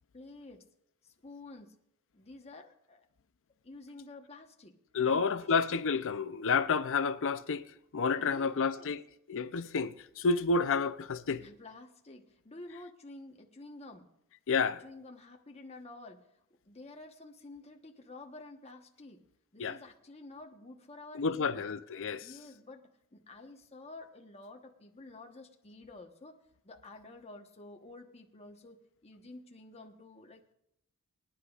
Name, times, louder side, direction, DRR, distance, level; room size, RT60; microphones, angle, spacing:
voice 1, 0.1-0.7 1.0-1.7 2.1-3.0 3.6-4.8 5.0-5.3 8.2-9.0 11.4-14.1 14.6-16.2 16.6-19.2 19.5-21.6 22.2-26.4 26.6-30.5, left 2 dB, 30° left, 1.1 m, -50 dB
voice 2, 4.9-7.7 7.9-9.0 9.3-11.4 14.5-14.8 19.6-19.8 21.1-22.3, left 5 dB, 60° left, 0.6 m, -30 dB
24.5 x 9.8 x 2.4 m
head